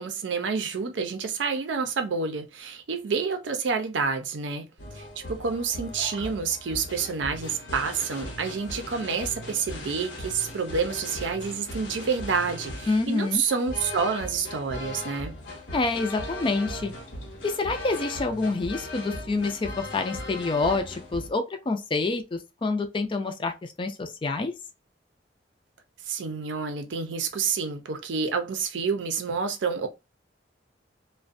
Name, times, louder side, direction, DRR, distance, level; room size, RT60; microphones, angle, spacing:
voice 1, 0.0-4.7 4.9-15.4 26.1-29.9, right 5 dB, 80° right, 0.5 m, -28 dB
sound 1, 4.8-21.3, left 1 dB, 90° left, 0.9 m, -38 dB
voice 2, 12.9-13.4 15.7-16.9 17.4-24.5, left 3 dB, 30° left, 0.4 m, -27 dB
2.4 x 2.1 x 2.5 m
head